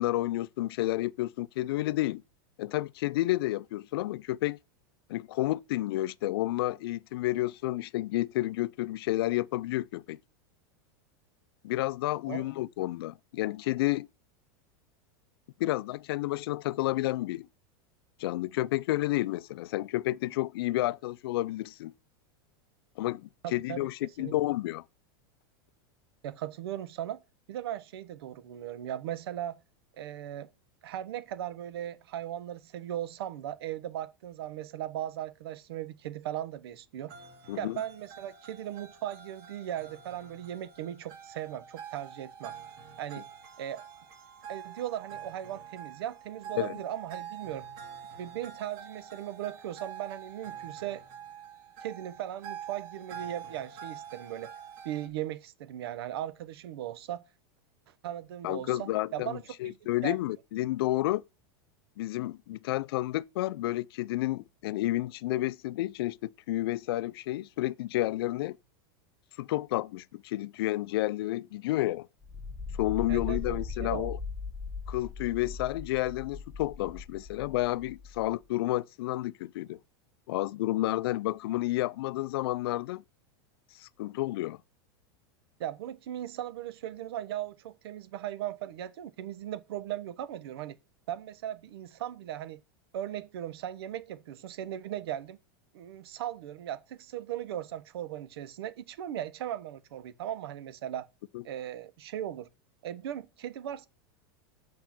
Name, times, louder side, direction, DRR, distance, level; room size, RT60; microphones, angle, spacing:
voice 1, 0.0-2.2 2.6-4.6 5.1-10.2 11.6-14.1 15.6-17.5 18.2-21.9 23.0-24.8 37.5-37.8 46.6-46.7 58.4-61.2 62.0-68.6 69.4-72.1 72.8-74.2 74.9-79.8 80.3-83.0 83.8-84.6 101.3-101.4, left 16 dB, 70° left, 0.4 m, -30 dB
voice 2, 23.4-24.3 26.2-27.2 27.5-29.6 30.0-30.5 30.8-37.1 37.5-42.5 43.0-43.2 43.6-43.8 44.5-47.6 48.2-51.0 51.8-54.5 54.8-57.2 58.0-59.4 59.6-59.8 60.0-60.2 73.1-74.1 85.6-90.8 91.1-92.6 92.9-95.4 95.7-101.1 101.4-102.5 102.8-103.9, right 11 dB, 75° right, 1.0 m, -38 dB
sound 1, 37.1-55.1, right 8 dB, 50° right, 2.2 m, -46 dB
sound 2, 72.2-78.3, left 4 dB, 5° right, 1.8 m, -39 dB
7.2 x 5.5 x 5.9 m
supercardioid pair, 160°, 13 cm